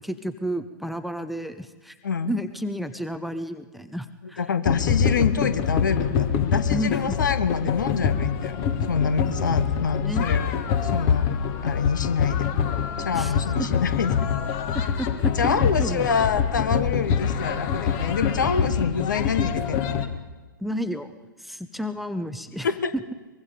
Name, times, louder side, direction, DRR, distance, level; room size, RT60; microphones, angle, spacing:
voice 1, 0.0-2.0 2.3-4.4 6.7-7.2 9.4-10.3 13.1-13.3 13.6-13.7 14.7-16.1 20.6-22.7 22.9-23.1, equal, ahead, 11 dB, 0.7 m, -31 dB
voice 2, 2.0-2.3 4.4-10.5 10.8-11.3 11.6-12.5 13.0-14.3 15.3-19.9 22.6-22.9, left 6 dB, 65° left, 13 dB, 1.4 m, -26 dB
sound 1, 4.7-20.1, left 7 dB, 35° left, 1.5 m, -25 dB
23.5 x 22.0 x 5.2 m, 1.3 s
figure-of-eight pair, 110°, 11 cm